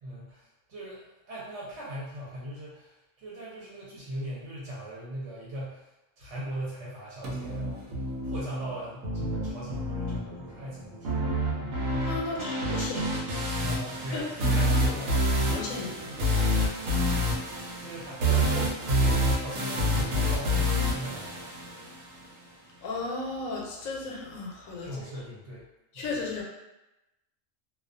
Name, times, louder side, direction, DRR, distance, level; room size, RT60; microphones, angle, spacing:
voice 1, 0.0-1.0 1.3-5.9 6.2-7.8 8.2-11.3 11.6-11.8 13.6-15.3 17.8-21.4 24.8-25.7 25.9-26.1, right 1 dB, 65° right, -7 dB, 0.9 m, -39 dB
sound 1, 7.2-22.2, equal, 90° right, 1.0 m, -28 dB
voice 2, 12.0-13.1 14.1-14.6 15.4-16.2 22.8-25.0 25.9-26.4, left 3 dB, 85° left, -1 dB, 1.0 m, -35 dB
2.3 x 2.2 x 2.5 m, 0.97 s
omnidirectional pair, 1.4 m